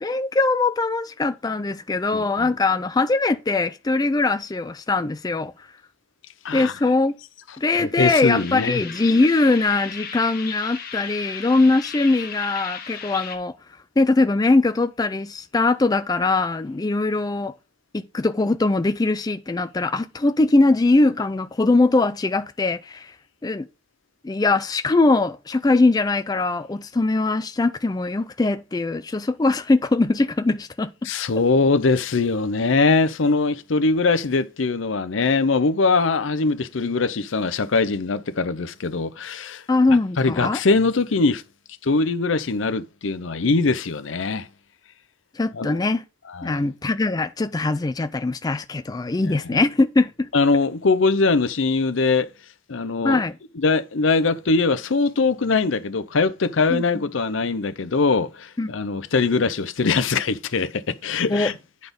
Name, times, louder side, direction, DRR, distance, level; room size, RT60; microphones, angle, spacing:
voice 1, 0.0-5.5 6.5-7.1 7.6-13.5 14.0-17.5 17.9-23.1 23.4-23.7 24.2-31.1 39.7-40.6 45.4-46.0 46.4-50.3 53.0-53.3 56.7-56.8 58.6-58.7 61.3-61.5, left 3 dB, 20° left, 0.4 m, -21 dB
voice 2, 2.1-2.5 6.4-6.7 7.8-8.8 31.0-39.6 40.2-41.4 41.8-44.5 45.5-45.8 46.3-46.6 49.2-49.6 50.3-52.3 52.7-53.2 53.6-61.5, left 3 dB, 75° left, 0.7 m, -22 dB
sound 1, 8.3-13.4, left 6 dB, 50° left, 1.3 m, -35 dB
9.5 x 4.1 x 5.2 m
head